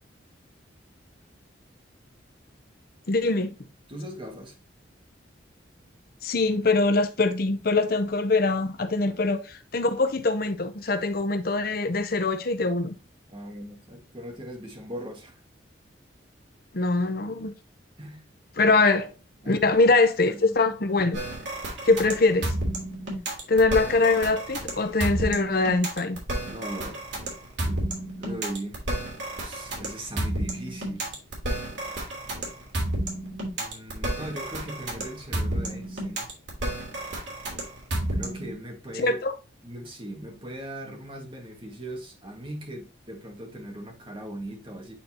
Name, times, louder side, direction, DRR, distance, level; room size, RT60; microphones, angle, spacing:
voice 1, 3.1-3.5 6.2-12.9 16.7-17.5 18.6-19.1 19.5-21.2 21.8-22.5 23.5-26.2 39.0-39.3, left 3 dB, 50° left, 0.7 m, -23 dB
voice 2, 3.9-4.6 9.1-9.2 13.3-15.4 18.0-18.2 18.6-18.8 19.4-19.6 19.9-20.0 20.3-20.8 26.4-27.0 27.7-27.9 28.2-28.8 29.4-31.1 33.5-36.3 38.1-39.2 39.6-44.9, right 1 dB, 25° right, 1.6 m, -39 dB
sound 1, 21.1-38.5, right 1 dB, 70° right, 2.9 m, -31 dB
8.5 x 4.0 x 2.8 m
head